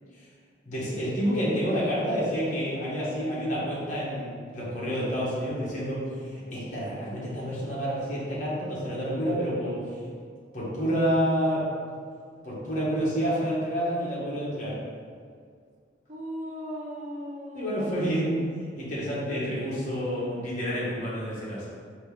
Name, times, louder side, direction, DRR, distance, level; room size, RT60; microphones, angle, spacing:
voice 1, 0.6-9.8 10.5-11.7 12.4-14.7 17.5-18.4 18.7-21.7, equal, 40° left, -8 dB, 1.3 m, -29 dB
voice 2, 16.1-18.3, equal, 40° right, -3 dB, 0.6 m, -38 dB
4.3 x 2.9 x 3.5 m, 2.1 s
head